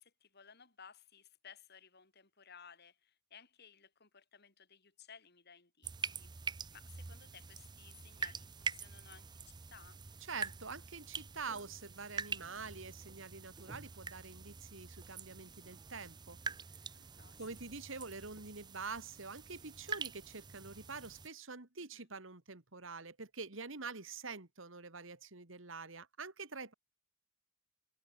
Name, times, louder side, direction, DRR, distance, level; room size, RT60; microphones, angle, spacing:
voice 1, 0.0-10.0 16.9-17.5 21.8-22.1, left 7 dB, 55° left, 5.1 m, -59 dB
sound 1, 5.8-21.3, right 5 dB, 20° right, 0.5 m, -45 dB
voice 2, 10.3-16.4 17.4-26.7, right 4 dB, 70° right, 2.3 m, -46 dB
head